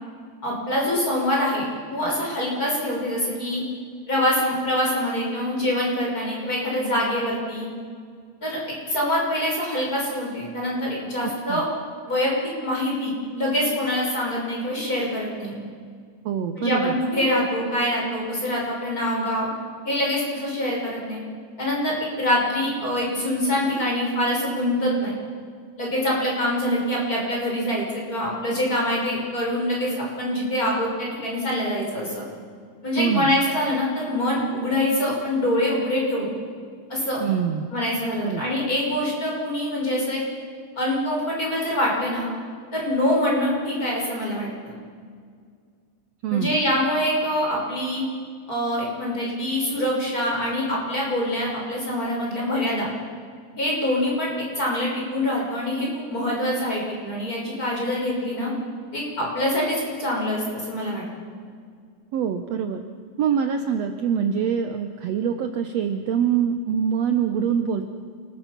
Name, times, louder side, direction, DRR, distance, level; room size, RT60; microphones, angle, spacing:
voice 1, 0.4-1.6 1.9-3.6 4.1-7.7 8.4-11.6 12.1-12.3 12.6-15.6 16.6-19.5 19.8-21.2 21.6-25.1 25.8-32.2 32.8-36.3 36.9-37.2 37.7-40.2 40.8-42.3 42.7-44.7 46.3-48.0 48.5-52.9 53.6-58.5 58.9-61.0, left 1 dB, 20° left, -3 dB, 6.2 m, -25 dB
voice 2, 11.2-11.6 16.2-16.9 33.0-33.4 37.2-37.7 38.2-38.4 46.2-46.6 62.1-62.8 63.2-67.9, right 7 dB, 75° right, 6 dB, 1.5 m, -24 dB
29.0 x 20.5 x 6.0 m, 2.1 s
omnidirectional pair, 4.2 m